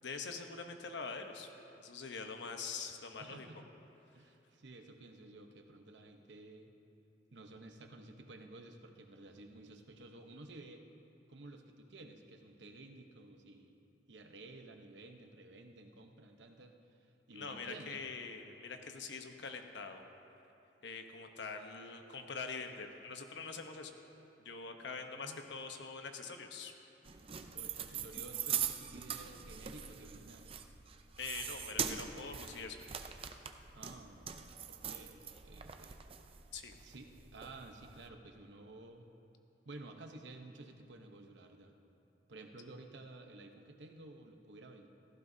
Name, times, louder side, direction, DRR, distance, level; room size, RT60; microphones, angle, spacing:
voice 1, 0.0-1.5 1.8-3.5 17.3-20.0 20.8-23.9 24.4-26.7 31.2-32.8 36.5-36.8, left 4 dB, 80° left, 5 dB, 1.0 m, -44 dB
voice 2, 3.2-3.7 4.1-6.7 7.3-10.9 11.3-13.7 14.1-18.0 24.9-25.5 27.5-30.5 33.7-34.3 34.6-36.0 36.8-39.1 39.6-41.7 42.3-44.9, right 2 dB, 80° right, 4 dB, 0.9 m, -53 dB
sound 1, 27.1-38.1, right 8 dB, 30° right, 0.5 m, -42 dB
17.0 x 15.0 x 2.7 m, 2.9 s
head